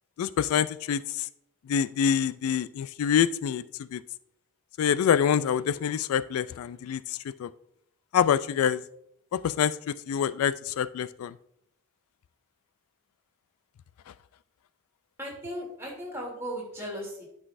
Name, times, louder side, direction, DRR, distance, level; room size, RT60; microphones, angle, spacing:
voice 1, 0.2-1.3 1.7-3.6 3.9-4.0 4.8-7.5 8.1-8.8 9.3-11.3, left 8 dB, 85° left, 16 dB, 0.3 m, -26 dB
voice 2, 15.2-17.2, equal, 10° right, -4 dB, 2.8 m, -36 dB
11.0 x 6.0 x 2.6 m, 0.74 s
head